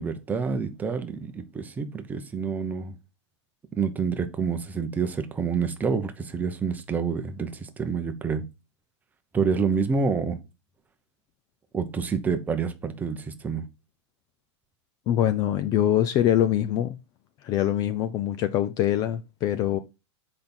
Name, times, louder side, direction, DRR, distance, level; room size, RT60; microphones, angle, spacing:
voice 1, 0.0-3.0 3.7-8.4 9.3-10.4 11.7-13.7, right 5 dB, 10° right, 0.9 m, -28 dB
voice 2, 15.1-17.0 17.4-19.8, left 11 dB, 25° left, 0.5 m, -24 dB
7.7 x 5.4 x 4.4 m
supercardioid pair, 160°, 15 cm